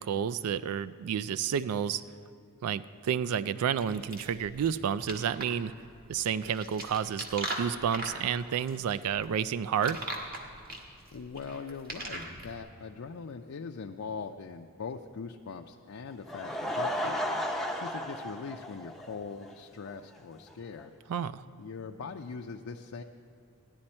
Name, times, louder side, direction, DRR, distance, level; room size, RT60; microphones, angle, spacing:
voice 1, 0.0-2.0 2.6-5.7 6.1-10.0 21.1-21.4, right 8 dB, 85° right, 16 dB, 0.3 m, -30 dB
sound 1, 3.8-12.6, right 2 dB, 45° right, 1.5 m, -40 dB
voice 2, 11.1-17.2 17.7-20.9 21.6-23.0, left 5 dB, 70° left, 3 dB, 0.5 m, -41 dB
Laughter / Crowd, 16.1-19.5 19.9-20.0 20.5-20.6 20.8-20.9, equal, ahead, 0.6 m, -34 dB
15.5 x 10.5 x 4.3 m, 2.7 s
head